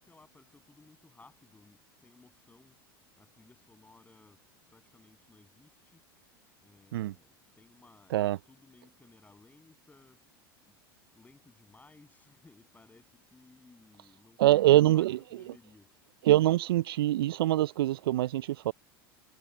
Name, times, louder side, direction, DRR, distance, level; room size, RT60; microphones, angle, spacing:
voice 1, 0.0-2.8 3.2-6.3 6.6-10.4 10.7-10.8 11.1-15.9, left 3 dB, 10° left, 8.0 m, -60 dB
voice 2, 14.4-15.2 16.2-18.7, right 14 dB, 75° right, 0.4 m, -24 dB
hypercardioid pair, 85°, 13 cm